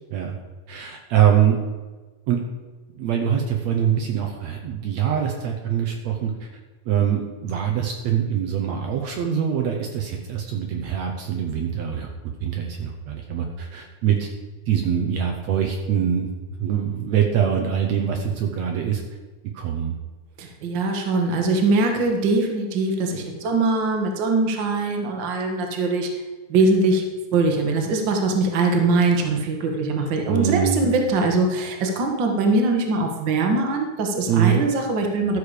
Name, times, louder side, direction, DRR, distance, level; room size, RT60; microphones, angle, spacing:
voice 1, 0.7-1.6 2.3-2.4 3.0-6.5 6.9-14.3 14.7-16.3 16.6-19.0 19.5-19.9 30.3-30.9 34.3-34.6, right 9 dB, 70° right, 2 dB, 2.0 m, -23 dB
voice 2, 20.4-26.1 26.5-27.0 27.3-35.4, right 3 dB, 50° right, 3 dB, 1.6 m, -22 dB
13.0 x 6.7 x 5.0 m, 1.3 s
omnidirectional pair, 3.5 m